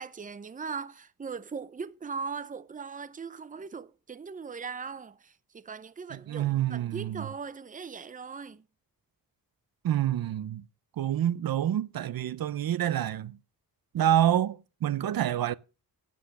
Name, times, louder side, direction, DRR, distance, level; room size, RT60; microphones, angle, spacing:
voice 1, 0.0-5.1 5.5-8.6, right 5 dB, 20° right, 0.6 m, -39 dB
voice 2, 6.1-7.3 9.8-10.6 11.0-13.4 13.9-15.5, right 11 dB, 70° right, 0.6 m, -27 dB
11.5 x 7.9 x 6.6 m
wide cardioid pair, 145°, 37 cm